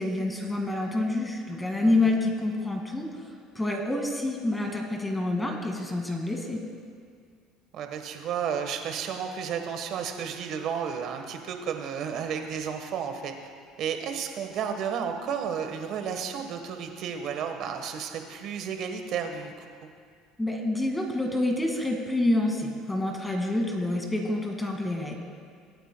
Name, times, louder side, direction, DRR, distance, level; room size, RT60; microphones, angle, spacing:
voice 1, 0.0-3.1 3.6-6.6 20.4-25.1, left 2 dB, 10° left, 2 dB, 2.0 m, -27 dB
voice 2, 7.7-13.3 13.8-19.7, right 7 dB, 60° right, 6 dB, 1.2 m, -32 dB
22.0 x 9.1 x 2.2 m, 2.1 s
supercardioid pair, 90°, 0 cm